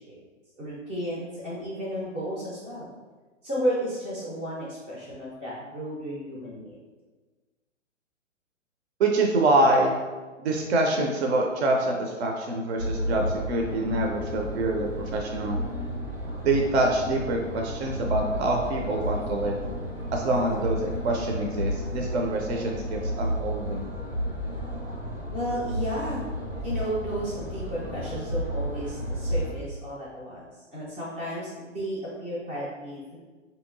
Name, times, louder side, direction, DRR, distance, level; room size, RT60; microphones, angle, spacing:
voice 1, 0.6-2.9 3.4-6.8 25.3-26.3 26.6-30.4 30.7-33.2, equal, 10° right, -6 dB, 0.3 m, -33 dB
voice 2, 9.0-10.0 10.4-15.6 16.4-19.6 20.1-23.9, right 2 dB, 60° right, 1 dB, 0.5 m, -25 dB
sound 1, 12.8-29.5, equal, 85° right, 1.3 m, -32 dB
4.2 x 2.8 x 2.6 m, 1.3 s
figure-of-eight pair, 120°, 38 cm